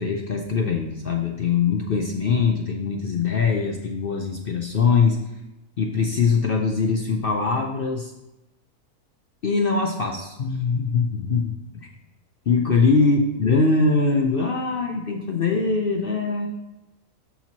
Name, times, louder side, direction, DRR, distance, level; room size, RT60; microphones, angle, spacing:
voice 1, 0.0-5.2 5.8-8.1 9.4-11.9 12.5-16.5, left 4 dB, 55° left, 2 dB, 0.6 m, -22 dB
12.5 x 4.4 x 2.9 m, 0.96 s
omnidirectional pair, 1.6 m